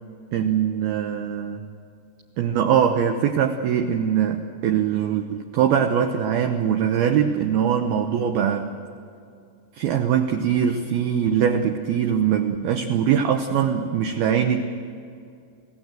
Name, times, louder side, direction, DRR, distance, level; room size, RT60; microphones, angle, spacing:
voice 1, 0.3-1.6 2.4-8.7 9.8-14.6, right 8 dB, 85° right, 6 dB, 2.1 m, -22 dB
28.5 x 18.0 x 7.7 m, 2.4 s
omnidirectional pair, 5.8 m